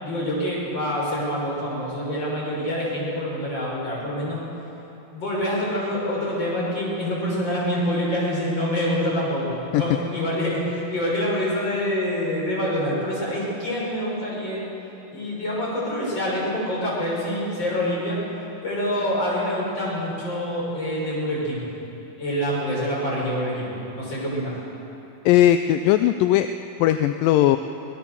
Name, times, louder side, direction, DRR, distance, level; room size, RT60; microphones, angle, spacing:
voice 1, 0.0-4.4 5.1-14.6 15.1-18.2 18.6-21.6 22.2-23.7 23.9-24.6, equal, 30° left, -5 dB, 6.7 m, -26 dB
voice 2, 25.3-26.5 26.8-27.6, left 12 dB, 80° left, 9 dB, 2.1 m, -18 dB
25.0 x 17.5 x 7.0 m, 3.0 s
omnidirectional pair, 4.3 m